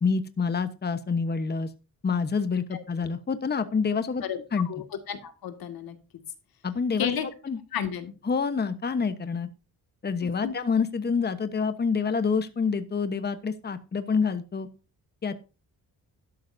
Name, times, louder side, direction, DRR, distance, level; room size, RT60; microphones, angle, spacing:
voice 1, 0.0-1.7 2.0-4.2 4.5-4.7 6.6-7.1 7.4-7.6 8.2-9.5 10.0-14.7 15.2-15.3, left 5 dB, 30° left, 11 dB, 1.1 m, -27 dB
voice 2, 4.7-6.0 7.0-7.3 7.7-8.1 10.4-10.6, left 8 dB, 85° left, 8 dB, 2.1 m, -32 dB
12.5 x 11.5 x 2.7 m, 0.32 s
cardioid pair, 125°, 35 cm